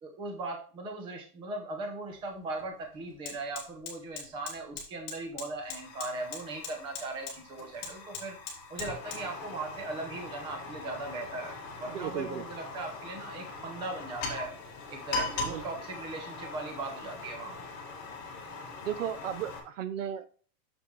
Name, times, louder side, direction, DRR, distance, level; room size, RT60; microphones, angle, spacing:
voice 1, 0.0-8.4 8.7-11.5 11.8-14.5 14.9-17.6, right 2 dB, 10° right, 4 dB, 0.6 m, -39 dB
Fire, 2.1-2.2 2.6-19.6, left 3 dB, 30° left, 2.1 m, -40 dB
voice 2, 11.9-12.4 15.4-15.6 18.8-20.3, right 10 dB, 50° right, 13 dB, 0.6 m, -35 dB
7.0 x 7.0 x 3.1 m, 0.41 s
supercardioid pair, 165°, 50 cm